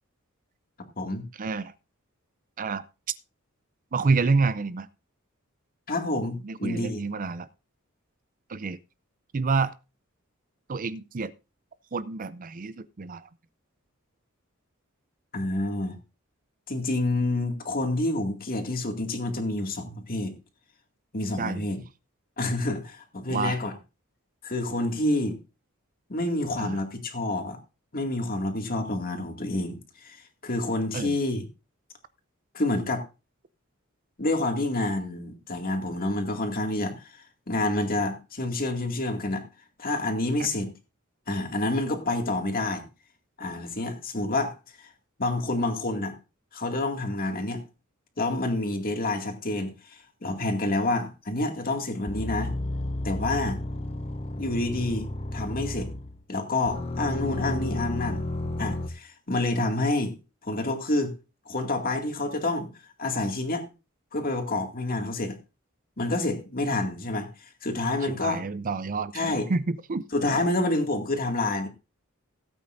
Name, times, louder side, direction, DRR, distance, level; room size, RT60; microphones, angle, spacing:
voice 1, 1.4-1.7 2.6-2.8 3.9-4.9 6.4-7.5 8.5-8.8 9.3-9.7 10.7-11.3 11.9-13.3 21.4-21.6 23.3-23.6 26.6-26.7 30.9-31.1 68.1-69.2 69.5-70.0, right 4 dB, 40° right, 16 dB, 0.5 m, -28 dB
voice 2, 5.9-7.0 15.3-16.0 16.7-20.4 21.1-21.8 22.4-23.7 24.4-25.4 26.1-27.6 27.9-31.4 32.5-33.0 34.2-37.0 37.5-39.4 39.8-40.7 41.3-42.8 43.4-44.9 45.2-46.1 46.5-47.6 48.2-52.5 53.0-53.6 54.4-55.9 56.3-58.3 58.6-60.2 60.4-61.1 61.5-62.7 63.0-63.7 64.1-65.4 66.0-68.4 69.1-69.5 70.1-71.7, left 2 dB, 45° left, 4 dB, 2.2 m, -28 dB
sound 1, 52.1-56.2 56.6-58.9, left 1 dB, 30° left, 0.8 m, -32 dB
17.5 x 8.6 x 2.6 m, 0.30 s
head